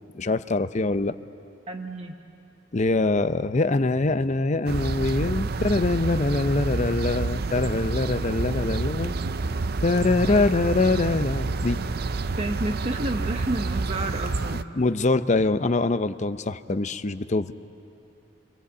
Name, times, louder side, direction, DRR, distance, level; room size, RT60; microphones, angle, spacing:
voice 1, 0.1-1.2 2.7-9.2 9.8-11.8 14.7-17.5, left 3 dB, 40° left, 12 dB, 0.6 m, -24 dB
voice 2, 1.7-2.1 10.3-10.4 12.4-14.7, right 2 dB, 35° right, 3 dB, 0.9 m, -30 dB
sound 1, 4.7-14.6, right 3 dB, 55° right, 0.5 m, -28 dB
27.5 x 25.0 x 8.3 m, 2.6 s
head